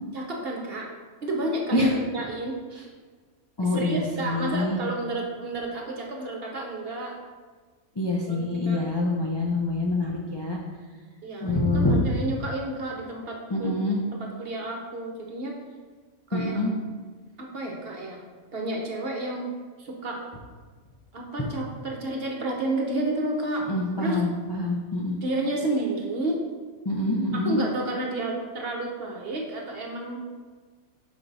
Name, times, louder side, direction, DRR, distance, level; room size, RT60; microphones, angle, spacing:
voice 1, 0.1-0.9 1.2-2.6 3.7-7.2 8.3-8.8 11.2-13.7 14.2-15.6 16.3-16.6 17.4-18.3 18.5-19.5 19.8-20.2 21.1-23.7 24.0-24.2 25.2-26.4 27.3-30.2, right 2 dB, 45° right, 0 dB, 1.0 m, -31 dB
voice 2, 3.6-4.8 8.0-10.6 11.4-12.0 13.5-14.0 16.3-16.7 23.7-25.2 26.8-27.6, left 2 dB, 35° left, -3 dB, 0.4 m, -26 dB
6.0 x 5.3 x 3.9 m, 1.5 s
omnidirectional pair, 1.5 m